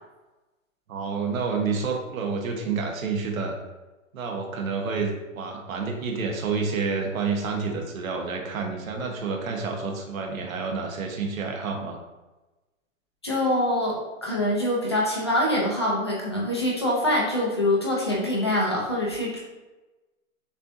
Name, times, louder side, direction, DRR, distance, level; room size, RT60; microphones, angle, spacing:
voice 1, 0.9-3.6 4.1-12.0, right 4 dB, 80° right, 2 dB, 1.1 m, -29 dB
voice 2, 13.2-19.4, left 1 dB, 20° left, -4 dB, 0.4 m, -24 dB
6.5 x 2.6 x 2.6 m, 1.1 s
hypercardioid pair, 175°, 40 cm